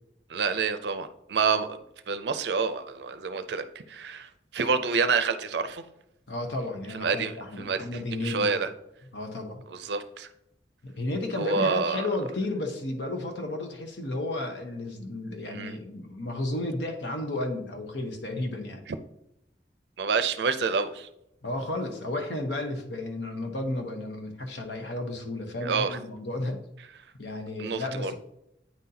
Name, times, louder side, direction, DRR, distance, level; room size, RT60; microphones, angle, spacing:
voice 1, 0.3-1.8 2.1-5.8 6.9-8.7 9.7-10.3 11.4-12.1 15.5-15.8 20.0-21.1 25.6-26.0 27.6-28.1, right 5 dB, 75° right, 11 dB, 0.5 m, -28 dB
voice 2, 6.3-8.6 9.1-9.6 10.8-18.8 21.4-26.6 27.2-28.1, left 2 dB, 85° left, 4 dB, 1.0 m, -33 dB
8.8 x 3.9 x 2.8 m, 0.82 s
head